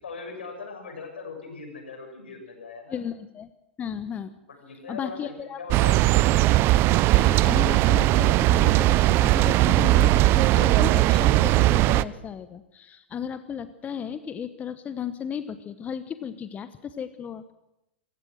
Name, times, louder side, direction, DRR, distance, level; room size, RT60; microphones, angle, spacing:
voice 1, 0.0-3.0 4.4-6.1, left 4 dB, 80° left, 3 dB, 6.9 m, -40 dB
voice 2, 2.9-3.5 3.8-4.3 4.9-5.6 7.1-17.4, left 8 dB, 25° left, 12 dB, 1.0 m, -34 dB
sound 1, 5.7-12.0, right 17 dB, 40° right, 0.6 m, -19 dB
26.0 x 16.0 x 6.4 m, 0.89 s
figure-of-eight pair, 95°, 6 cm